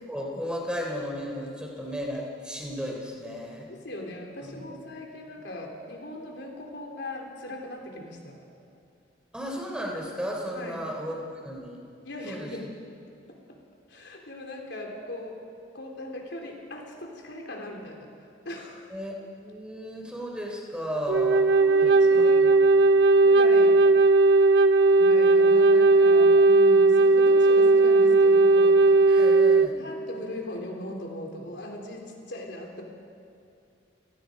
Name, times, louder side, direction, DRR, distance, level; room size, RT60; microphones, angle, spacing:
voice 1, 0.1-3.7 4.5-4.6 9.3-11.8 12.2-12.5 18.9-21.5 22.1-22.5 29.1-29.8, equal, 5° right, -1 dB, 3.5 m, -34 dB
voice 2, 3.7-8.4 10.5-10.8 12.0-12.9 13.3-13.6 13.9-15.4 15.7-18.1 18.4-18.9 21.6-23.8 24.9-28.8 29.7-32.8, left 1 dB, 70° left, 1 dB, 3.6 m, -39 dB
Wind instrument woodwind instrument, 21.1-29.7, right 3 dB, 65° right, 0.5 m, -18 dB
30.0 x 18.0 x 5.3 m, 2.5 s
head